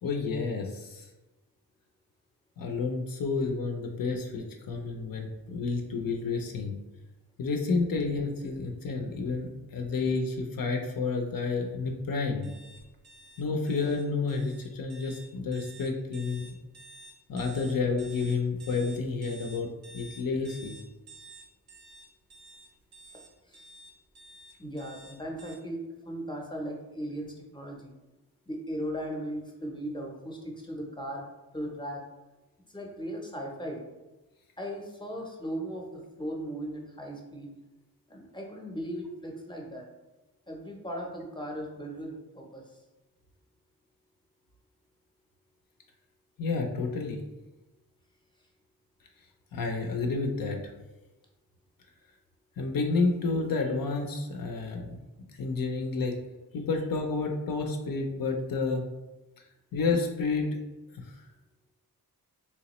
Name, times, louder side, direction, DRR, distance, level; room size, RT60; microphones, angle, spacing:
voice 1, 0.0-1.1 2.6-6.8 7.4-12.5 13.4-16.5 17.3-20.8 46.4-47.2 49.5-50.6 52.6-55.0 55.4-56.2 56.5-58.8 59.7-60.5 61.1-61.2, left 4 dB, 65° left, 3 dB, 0.5 m, -30 dB
sound 1, 12.4-25.5, right 2 dB, 85° right, 0.6 m, -51 dB
voice 2, 23.1-23.6 24.6-27.9 28.5-31.3 31.5-32.0 32.7-33.8 34.6-37.6 38.1-39.9 40.5-42.7, equal, 15° left, 0 dB, 0.6 m, -37 dB
3.4 x 2.9 x 2.9 m, 1.1 s
wide cardioid pair, 115°, 37 cm